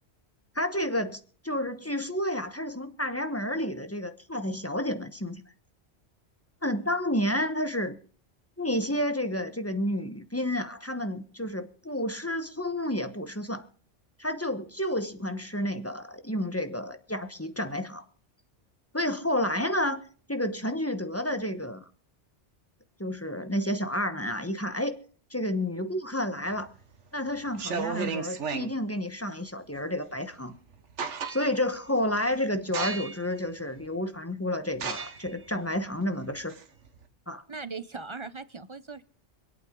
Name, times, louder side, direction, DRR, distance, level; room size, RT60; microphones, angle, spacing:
voice 1, 0.5-5.4 6.6-8.0 8.6-13.7 14.2-18.0 18.9-20.0 20.3-21.8 23.0-25.0 25.3-26.7 27.1-30.6 31.3-36.6 37.3-37.4, left 1 dB, 15° left, 9 dB, 1.0 m, -30 dB
sound 1, 26.5-27.0 27.5-28.7 30.3-30.4 30.7-31.7 32.1-32.3 32.7-33.3 33.8-33.9 34.7-37.0, right 5 dB, 80° right, 1.6 m, -34 dB
voice 2, 37.5-39.0, right 4 dB, 30° right, 14 dB, 0.6 m, -39 dB
26.0 x 8.8 x 3.8 m, 0.43 s
omnidirectional pair, 1.2 m